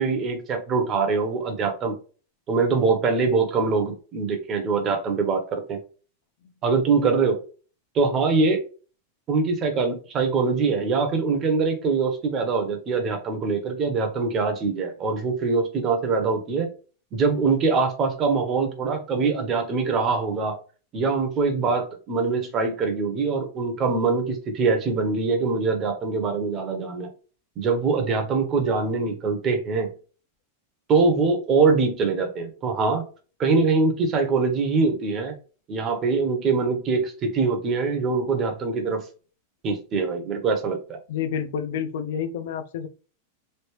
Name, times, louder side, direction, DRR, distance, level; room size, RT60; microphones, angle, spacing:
voice 1, 0.0-2.0 2.5-5.8 6.6-7.4 7.9-8.6 9.3-16.7 17.1-20.6 20.9-27.1 27.6-29.9 30.9-33.1 33.4-35.4 35.7-39.0 39.6-41.0, right 4 dB, 25° right, 0.7 m, -23 dB
voice 2, 41.1-42.9, left 8 dB, 60° left, 0.4 m, -29 dB
3.2 x 2.6 x 3.0 m
supercardioid pair, 170°, 0 cm